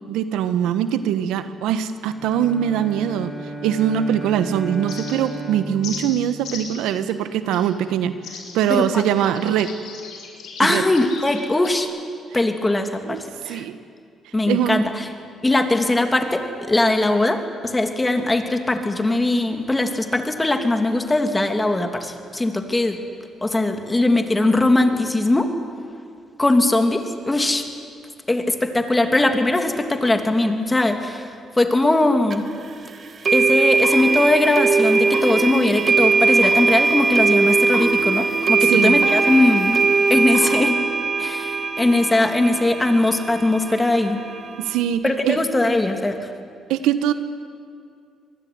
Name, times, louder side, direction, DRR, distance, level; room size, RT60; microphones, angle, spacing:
voice 1, 0.1-3.3 3.6-9.7 10.6-10.8 13.1-13.7 14.5-14.9 38.6-39.0 44.6-45.4 46.7-47.1, right 10 dB, 90° right, 11 dB, 1.3 m, -22 dB
Bowed string instrument, 2.1-7.3, right 1 dB, 25° right, 7.5 m, -34 dB
sound 1, 4.9-5.4 5.8-6.0 6.4-6.8 7.5-7.7 8.2-11.8, left 6 dB, 80° left, 5.4 m, -37 dB
voice 2, 8.7-9.4 10.6-11.9 12.3-13.7 14.3-15.1 15.4-23.0 23.4-25.5 26.4-27.6 28.3-31.3 31.6-32.4 33.3-39.8 40.1-40.8 41.2-44.2 45.0-46.3, left 2 dB, 15° left, 6 dB, 2.9 m, -20 dB
sound 2, 32.3-32.4 33.3-44.8, right 4 dB, 50° right, 2.3 m, -20 dB
25.5 x 20.5 x 9.6 m, 2.3 s
cardioid pair, 80°, 0 cm